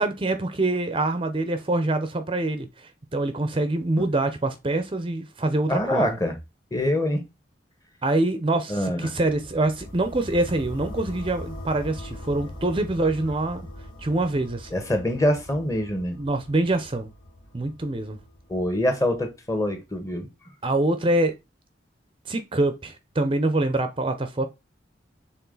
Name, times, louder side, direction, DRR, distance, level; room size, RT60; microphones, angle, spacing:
voice 1, 0.0-6.2 8.0-13.6 14.0-14.7 16.2-17.1 17.5-18.2 20.6-21.3 22.3-24.4, right 2 dB, 30° right, 0.6 m, -25 dB
voice 2, 5.7-6.3 6.7-7.2 8.7-9.1 14.7-16.2 18.5-20.3, left 1 dB, 20° left, 1.4 m, -24 dB
sound 1, 9.2-19.2, left 1 dB, 55° left, 2.3 m, -41 dB
7.0 x 3.7 x 3.9 m
head